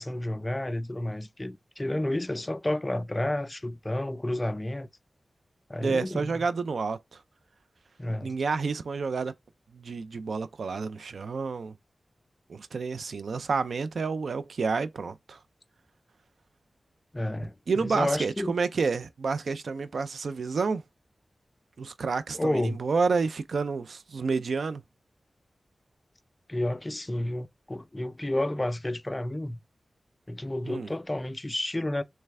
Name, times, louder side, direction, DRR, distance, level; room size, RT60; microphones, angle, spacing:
voice 1, 0.0-4.9 5.7-6.5 8.0-8.3 17.1-18.5 22.3-22.8 26.5-29.6 30.3-32.0, left 1 dB, 20° left, 0.3 m, -31 dB
voice 2, 5.8-7.2 8.2-9.3 9.7-11.7 12.5-15.4 17.7-20.8 21.8-24.8 30.7-30.9, right 4 dB, 85° right, 0.3 m, -29 dB
3.3 x 3.2 x 3.4 m
wide cardioid pair, 90°, 0 cm